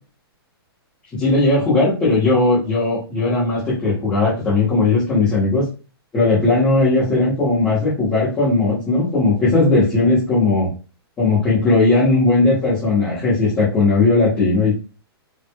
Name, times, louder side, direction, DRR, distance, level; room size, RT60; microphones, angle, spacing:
voice 1, 1.1-5.7 6.1-10.7 11.2-14.7, left 3 dB, 10° left, -9 dB, 1.1 m, -17 dB
4.4 x 2.5 x 2.2 m, 0.34 s
hypercardioid pair, 175°, 13 cm